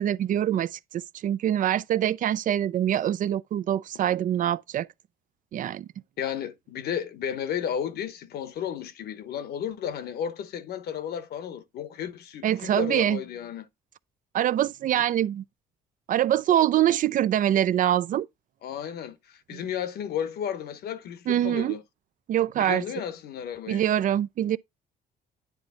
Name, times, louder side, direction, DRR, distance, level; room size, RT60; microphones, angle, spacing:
voice 1, 0.0-4.9 5.5-5.9 12.4-13.2 14.3-15.4 16.1-18.3 19.5-19.6 21.3-21.8 22.3-22.8 23.7-24.6, right 11 dB, 50° right, 0.4 m, -24 dB
voice 2, 6.2-13.6 14.9-15.0 18.6-21.8 22.6-23.8, left 9 dB, 65° left, 1.0 m, -33 dB
9.8 x 3.3 x 3.8 m
supercardioid pair, 65°, 17 cm